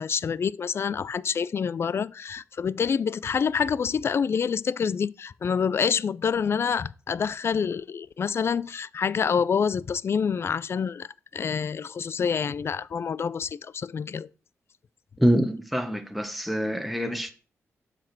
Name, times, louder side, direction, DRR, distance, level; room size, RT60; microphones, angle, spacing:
voice 1, 0.0-14.3, left 6 dB, 50° left, 0.4 m, -27 dB
voice 2, 15.2-17.3, equal, ahead, 1.3 m, -25 dB
7.5 x 5.0 x 6.1 m
cardioid pair, 80°, 5 cm